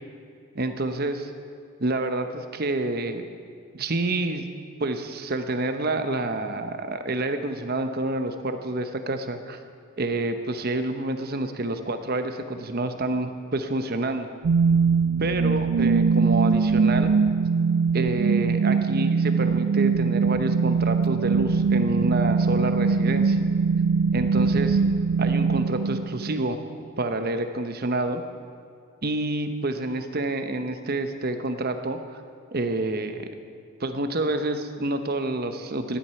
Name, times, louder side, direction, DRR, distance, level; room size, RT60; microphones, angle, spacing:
voice 1, 0.5-1.3 1.8-3.2 3.7-4.5 4.8-9.6 10.0-14.3 15.2-17.1 17.9-23.4 24.1-24.8 25.2-26.6 27.0-28.2 29.0-32.2 32.5-33.3 33.8-36.0, right 2 dB, 45° right, 7 dB, 0.9 m, -28 dB
sound 1, 14.4-26.4, right 5 dB, 60° right, 0.3 m, -22 dB
14.0 x 11.5 x 5.8 m, 2.3 s
head